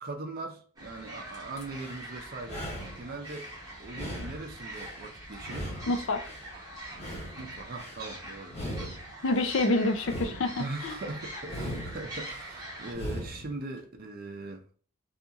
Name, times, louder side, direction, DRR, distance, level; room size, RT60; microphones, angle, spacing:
voice 1, 0.0-2.6 3.0-3.5 3.8-5.7 7.4-9.0 10.6-14.7, right 2 dB, 40° right, 0.5 m, -40 dB
sound 1, 0.8-12.9, right 1 dB, 15° right, 0.8 m, -44 dB
sound 2, 1.6-2.0 2.4-3.5 3.9-5.0 5.4-6.5 6.9-8.0 8.5-9.5 10.0-11.0 11.4-12.4 12.9-13.5, equal, 30° left, 1.0 m, -39 dB
voice 2, 5.9-6.2 9.2-10.9, left 2 dB, 55° left, 0.4 m, -27 dB
2.7 x 2.6 x 2.3 m
head